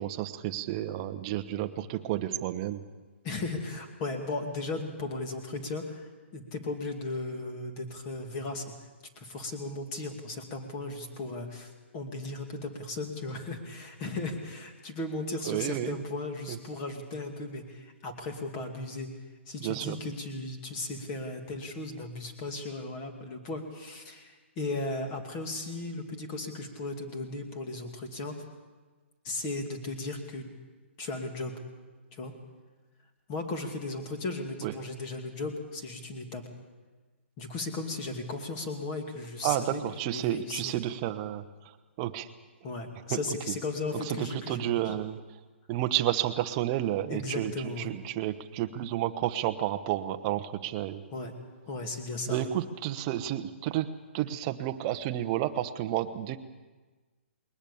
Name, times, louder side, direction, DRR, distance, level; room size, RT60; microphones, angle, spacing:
voice 1, 0.0-2.8 15.5-16.0 16.5-16.6 19.6-20.0 34.6-34.7 39.4-41.4 42.0-42.3 43.1-43.2 44.1-45.2 45.7-47.5 47.8-51.0 52.3-53.9 54.1-56.4, right 13 dB, 25° right, 9 dB, 0.9 m, -31 dB
voice 2, 3.2-8.7 9.2-19.1 19.5-28.3 29.2-30.5 31.0-31.6 32.1-32.3 33.3-36.4 37.4-40.7 42.6-44.9 47.1-47.9 51.1-51.3 51.7-52.5, left 2 dB, 25° left, 4 dB, 2.5 m, -36 dB
21.0 x 20.0 x 7.0 m, 1.3 s
hypercardioid pair, 160°, 7 cm